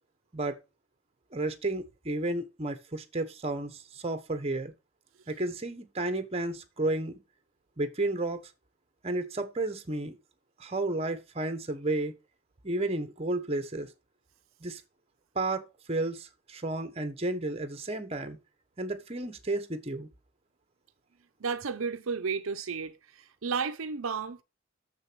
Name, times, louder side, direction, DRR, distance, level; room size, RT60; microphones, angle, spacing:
voice 1, 1.3-4.7 5.3-7.2 7.8-8.4 9.0-10.2 10.6-12.1 12.6-13.9 14.6-14.8 15.3-18.4 18.8-20.1, right 2 dB, 30° right, 1.0 m, -32 dB
voice 2, 21.4-23.0 23.4-24.4, right 5 dB, 70° right, 0.7 m, -32 dB
6.9 x 6.4 x 6.1 m
head